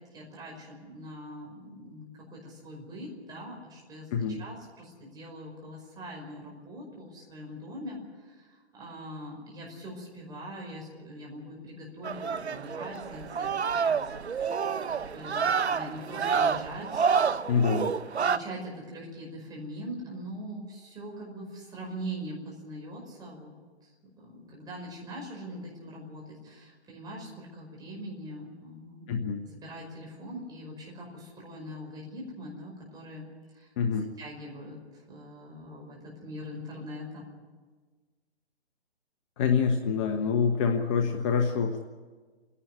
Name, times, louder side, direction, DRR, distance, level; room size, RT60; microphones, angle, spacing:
voice 1, 0.0-17.1 18.2-23.5 24.2-33.3 33.5-37.3, equal, 10° right, -2 dB, 5.4 m, -42 dB
sound 1, 12.0-18.4, right 6 dB, 80° right, 0.8 m, -28 dB
voice 2, 17.5-17.9 29.1-29.4 33.8-34.1 39.4-41.8, left 6 dB, 30° left, 4 dB, 1.2 m, -26 dB
28.5 x 11.5 x 9.7 m, 1.4 s
figure-of-eight pair, 135°, 33 cm